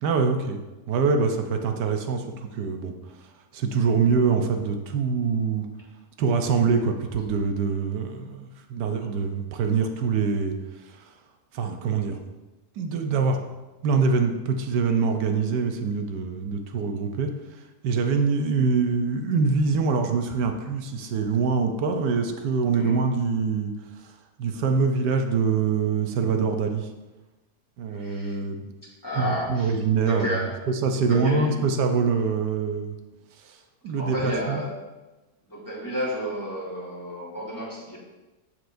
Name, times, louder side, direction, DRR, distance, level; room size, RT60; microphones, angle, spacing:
voice 1, 0.0-0.6 0.9-2.9 3.5-5.7 6.2-10.6 10.9-11.0 11.5-12.2 12.8-13.4 13.8-17.3 17.8-23.7 24.4-26.9 27.8-28.7 29.1-30.3 30.7-33.0 33.4-33.6 33.8-34.6, right 5 dB, 90° right, 5 dB, 1.4 m, -24 dB
voice 2, 22.7-23.0 27.9-28.4 28.8-29.7 30.0-30.6 31.0-31.6 34.0-34.8 35.5-38.0, equal, 10° left, -8 dB, 2.6 m, -31 dB
13.5 x 4.6 x 2.6 m, 1.1 s
omnidirectional pair, 1.7 m